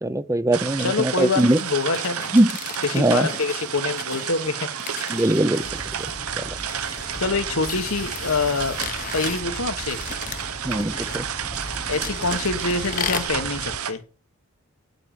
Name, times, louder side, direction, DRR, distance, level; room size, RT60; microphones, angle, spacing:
voice 1, 0.0-1.6 2.3-2.6 2.9-3.3 5.1-5.7 6.4-6.5 10.6-11.3, right 1 dB, 15° right, 13 dB, 0.5 m, -20 dB
sound 1, 0.5-13.9, right 9 dB, 85° right, 1.1 m, -31 dB
voice 2, 0.8-2.4 2.8-4.7 7.2-8.8 9.1-10.0 11.9-14.0, left 4 dB, 75° left, 9 dB, 1.3 m, -25 dB
sound 2, 1.2-13.3, left 7 dB, 35° left, 0.8 m, -37 dB
Animal, 5.6-13.8, equal, 10° left, 0.9 m, -39 dB
8.9 x 7.7 x 7.1 m, 0.36 s
head